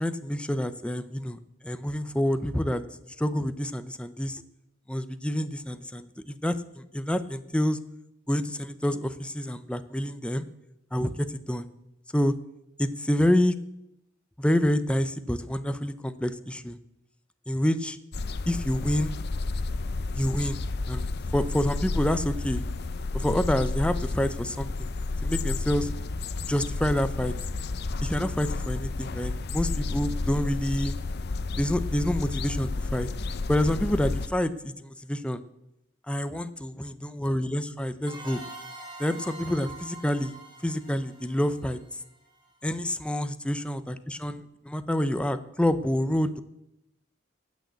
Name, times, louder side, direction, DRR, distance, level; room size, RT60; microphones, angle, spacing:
voice 1, 0.0-1.4 1.6-2.8 3.2-4.4 4.9-7.8 8.3-10.4 10.9-11.6 12.1-12.3 12.8-13.5 14.4-16.8 17.5-18.0 18.5-19.2 20.1-20.6 20.9-22.6 23.1-24.9 25.2-25.9 26.4-27.3 28.0-30.9 31.6-33.1 33.5-35.4 36.1-38.4 39.0-40.3 40.6-41.8 42.6-46.4, left 1 dB, 5° left, 11 dB, 0.6 m, -27 dB
sound 1, 18.1-34.3, left 3 dB, 55° left, 0.6 m, -31 dB
sound 2, 38.1-42.6, right 2 dB, 25° right, 2.8 m, -45 dB
16.5 x 6.5 x 8.1 m, 0.86 s
head